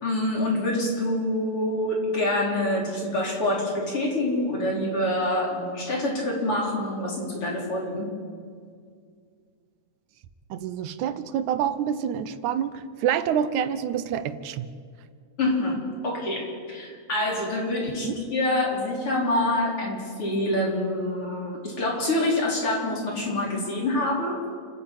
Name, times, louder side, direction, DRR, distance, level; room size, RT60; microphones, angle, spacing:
voice 1, 0.0-8.1 15.4-24.5, left 1 dB, 45° left, -2 dB, 4.9 m, -26 dB
voice 2, 10.5-14.7 18.0-18.2, right 9 dB, 80° right, 13 dB, 2.3 m, -27 dB
29.5 x 10.0 x 8.7 m, 2.2 s
omnidirectional pair, 3.4 m